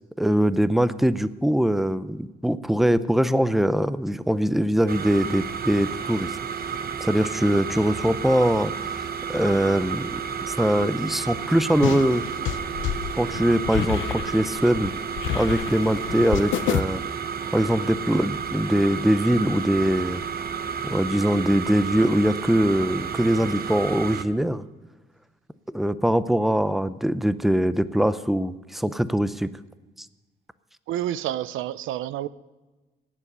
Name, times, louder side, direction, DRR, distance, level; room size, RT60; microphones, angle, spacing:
voice 1, 0.2-6.3 7.0-8.7 9.3-10.2 10.5-12.2 13.2-14.9 15.3-17.0 17.5-20.2 20.8-24.6 25.7-29.5 30.0-30.1, equal, ahead, 0.6 m, -22 dB
sound 1, 4.9-24.2, right 7 dB, 50° right, 0.9 m, -31 dB
sound 2, 11.8-16.8, left 11 dB, 75° left, 0.7 m, -29 dB
voice 2, 30.9-32.3, right 12 dB, 85° right, 0.6 m, -29 dB
18.0 x 7.5 x 6.7 m
cardioid pair, 90°, 20 cm